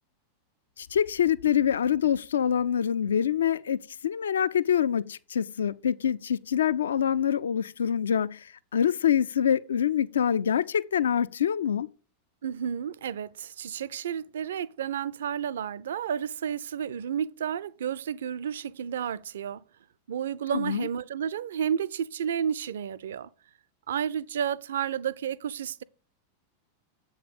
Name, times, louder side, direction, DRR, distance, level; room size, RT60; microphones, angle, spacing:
voice 1, 0.8-11.9 20.5-20.9, left 9 dB, 65° left, 0.4 m, -25 dB
voice 2, 12.4-19.6 20.1-23.3 23.9-25.8, right 8 dB, 60° right, 0.4 m, -31 dB
8.0 x 5.4 x 6.7 m
figure-of-eight pair, 90°, 0 cm